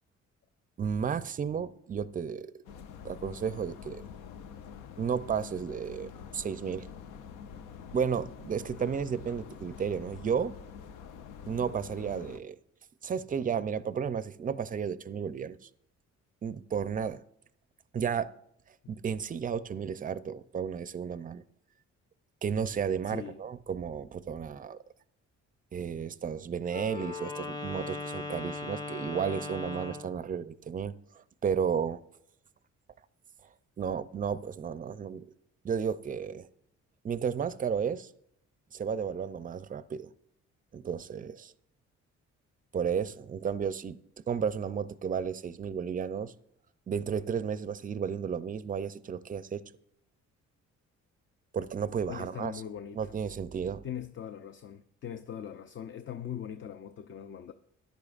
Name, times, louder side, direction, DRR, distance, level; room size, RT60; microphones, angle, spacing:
voice 1, 0.8-2.5 3.0-4.1 5.0-6.9 7.9-10.5 11.5-12.6 13.0-15.6 16.4-17.2 17.9-18.3 18.9-21.4 22.4-24.8 25.7-32.0 33.8-35.2 35.6-36.5 37.0-38.1 38.7-40.1 40.7-41.5 42.7-44.0 44.3-46.3 46.9-49.6 51.5-52.5 52.9-53.8, right 7 dB, 30° right, 0.4 m, -33 dB
sound 1, 2.6-12.4, left 7 dB, 90° left, 0.7 m, -46 dB
voice 2, 23.1-23.4 52.1-53.1 53.8-57.5, left 9 dB, 40° left, 0.5 m, -41 dB
Wind instrument woodwind instrument, 26.7-30.2, left 3 dB, 15° left, 0.8 m, -38 dB
13.5 x 10.5 x 2.4 m
cardioid pair, 90°, 30 cm